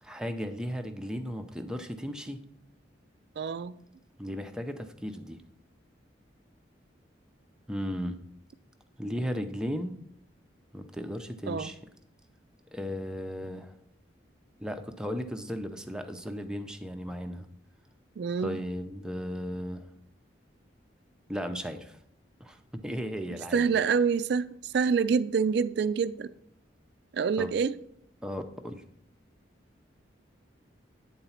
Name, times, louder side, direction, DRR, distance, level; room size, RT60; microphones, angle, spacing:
voice 1, 0.0-2.4 4.2-5.4 7.7-8.2 9.0-9.9 10.7-11.8 12.7-13.7 14.6-17.5 18.4-19.9 21.3-22.0 22.4-23.7 27.4-27.5 28.2-28.8, equal, 5° right, 6 dB, 0.5 m, -35 dB
voice 2, 3.4-3.8 11.5-11.7 18.2-18.6 23.5-26.3 27.1-27.7, right 6 dB, 60° right, 15 dB, 0.3 m, -26 dB
9.1 x 3.9 x 5.7 m, 0.73 s
head